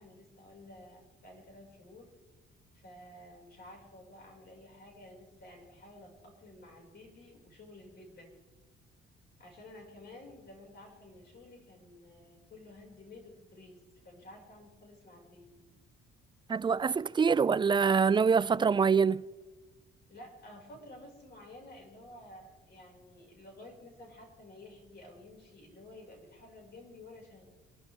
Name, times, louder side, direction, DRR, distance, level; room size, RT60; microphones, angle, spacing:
voice 1, 0.0-2.1 2.8-8.3 9.4-13.8 14.0-15.5 20.1-27.5, left 1 dB, 55° left, 5.9 m, -52 dB
voice 2, 16.5-19.3, right 6 dB, 25° right, 0.4 m, -25 dB
25.5 x 13.0 x 3.6 m
cardioid pair, 90°, 20 cm